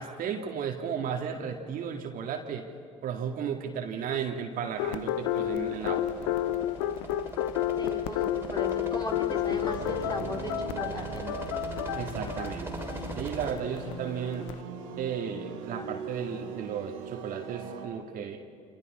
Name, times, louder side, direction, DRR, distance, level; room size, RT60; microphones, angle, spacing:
voice 1, 0.0-2.7 3.0-6.3 12.0-12.7 13.2-14.5 15.0-18.4, right 7 dB, 55° right, 3 dB, 2.1 m, -34 dB
sound 1, 4.8-14.6, left 12 dB, 75° left, 0.7 m, -31 dB
sound 2, 5.0-13.6, right 2 dB, 15° right, 3.2 m, -42 dB
voice 2, 7.8-11.3, left 1 dB, 25° left, 0 dB, 3.6 m, -37 dB
sound 3, 9.5-17.9, right 6 dB, 80° right, 1.9 m, -40 dB
28.5 x 26.5 x 4.4 m, 2.4 s
hypercardioid pair, 60°, 17 cm